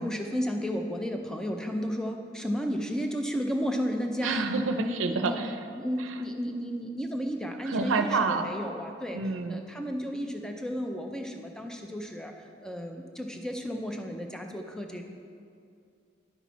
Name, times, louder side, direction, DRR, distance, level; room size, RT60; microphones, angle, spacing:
voice 1, 0.0-4.4 4.7-9.2 9.5-15.0, equal, 5° left, 3 dB, 0.5 m, -33 dB
voice 2, 4.2-5.6 6.0-6.2 7.6-8.5 9.1-9.6, right 4 dB, 90° right, 7 dB, 0.5 m, -28 dB
10.0 x 5.9 x 4.1 m, 2.4 s
head